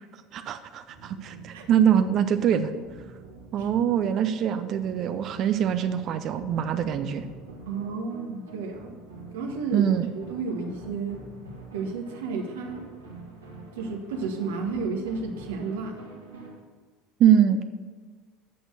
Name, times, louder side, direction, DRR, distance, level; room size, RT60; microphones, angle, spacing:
voice 1, 0.3-2.7 3.5-7.3 9.7-10.1 17.2-17.6, right 9 dB, 50° right, 9 dB, 0.6 m, -23 dB
sound 1, 0.9-16.6, right 2 dB, 90° right, 1.8 m, -45 dB
voice 2, 7.7-8.9 9.3-9.9 10.1-11.2 11.7-12.8 13.7-16.0, right 4 dB, 75° right, 4 dB, 1.2 m, -32 dB
8.6 x 6.2 x 6.6 m, 1.5 s
hypercardioid pair, 70°, 0 cm